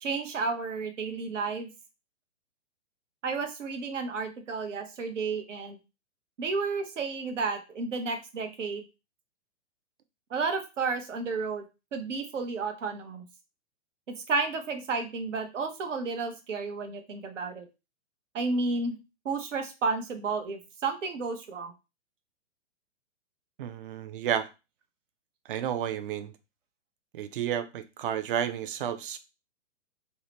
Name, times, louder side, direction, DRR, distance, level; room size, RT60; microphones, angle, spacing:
voice 1, 0.0-1.7 3.2-5.8 6.4-8.8 10.3-11.6 11.9-13.2 14.3-17.7 18.3-19.0 19.2-21.7, right 4 dB, 85° right, 6 dB, 0.8 m, -32 dB
voice 2, 23.6-24.5 25.5-26.3 27.1-29.2, right 9 dB, 50° right, 11 dB, 0.4 m, -31 dB
2.7 x 2.1 x 2.9 m, 0.27 s
hypercardioid pair, 130°, 36 cm